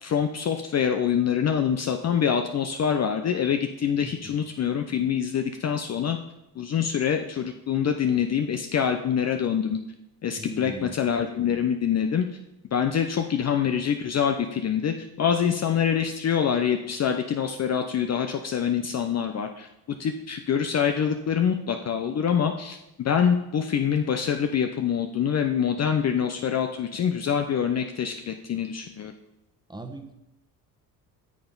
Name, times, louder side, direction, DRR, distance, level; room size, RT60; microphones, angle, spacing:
voice 1, 0.0-6.2 6.6-9.8 10.2-12.3 12.7-19.7 20.0-29.1, left 8 dB, 35° left, 6 dB, 0.7 m, -25 dB
voice 2, 4.0-4.4 10.4-11.0 29.7-30.1, right 2 dB, 10° right, 4 dB, 1.4 m, -39 dB
9.8 x 6.9 x 4.0 m, 0.90 s
hypercardioid pair, 65°, 48 cm